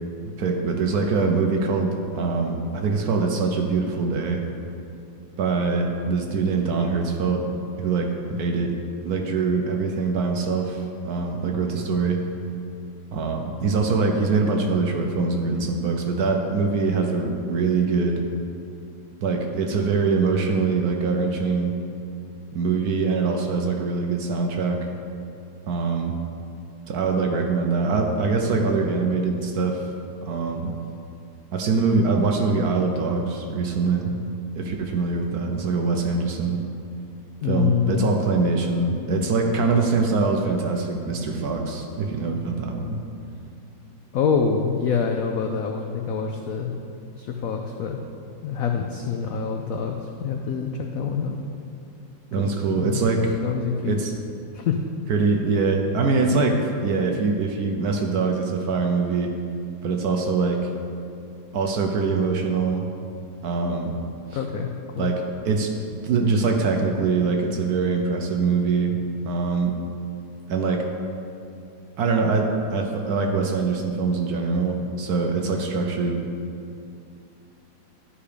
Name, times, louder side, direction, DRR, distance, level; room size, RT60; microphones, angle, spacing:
voice 1, 0.4-4.4 5.4-7.5 7.8-8.8 9.0-12.2 13.1-18.2 19.2-21.8 22.5-24.8 25.7-26.1 26.9-29.8 30.2-30.7 31.5-34.1 34.5-36.6 37.5-43.0 52.3-53.4 53.8-54.1 55.1-59.3 59.8-60.7 61.5-62.9 63.4-63.9 65.0-65.7 66.0-69.8 70.5-70.8 72.0-76.2, right 4 dB, 65° right, 2 dB, 1.0 m, -23 dB
voice 2, 37.4-38.1 44.1-46.8 47.1-48.0 48.4-51.4 52.4-54.0 54.5-54.8 64.3-65.1, left 6 dB, 90° left, 3 dB, 0.7 m, -26 dB
11.5 x 5.1 x 5.0 m, 2.6 s
omnidirectional pair, 2.1 m